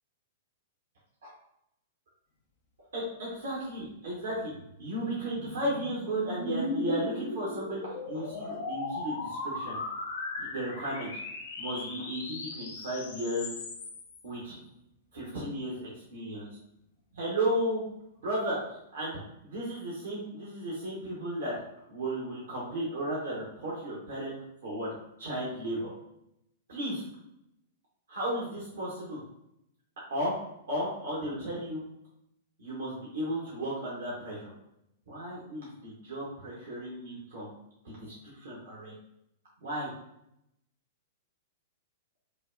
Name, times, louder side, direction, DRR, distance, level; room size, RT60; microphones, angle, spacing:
voice 1, 2.9-4.5 4.8-9.8 10.4-11.1 11.6-13.5 14.2-14.6 15.1-16.5 17.1-17.8 18.2-21.5 21.9-24.9 25.2-25.9 26.7-27.1 28.1-29.2 30.1-30.3 30.7-31.8 32.6-34.5 35.1-37.5 37.8-38.9 39.6-39.9, right 1 dB, 65° right, -6 dB, 1.0 m, -34 dB
sound 1, 4.5-14.2, left 2 dB, 55° left, 0.5 m, -37 dB
5.2 x 2.1 x 2.4 m, 0.80 s
figure-of-eight pair, 105°, 0 cm